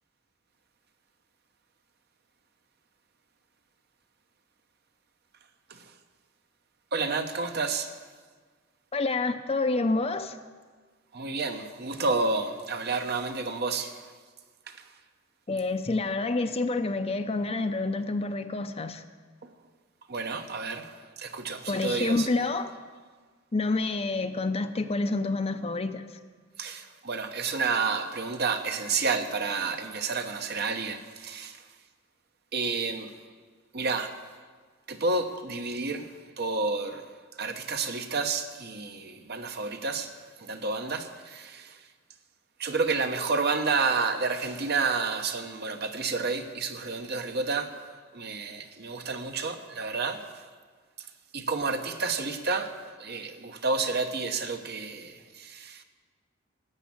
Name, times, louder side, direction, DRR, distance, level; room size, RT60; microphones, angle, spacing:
voice 1, 6.9-8.0 11.1-14.1 14.7-14.8 19.4-19.5 20.1-22.3 26.6-31.6 32.5-33.1 33.7-34.2 34.9-36.1 36.4-37.0 37.4-41.8 42.6-47.7 48.1-50.4 51.0-51.1 51.3-55.8, right 4 dB, 50° right, 7 dB, 1.0 m, -30 dB
voice 2, 8.9-10.4 15.5-19.0 21.7-22.7 23.5-26.0, left 3 dB, 30° left, 9 dB, 0.6 m, -28 dB
12.0 x 8.4 x 8.6 m, 1.5 s
head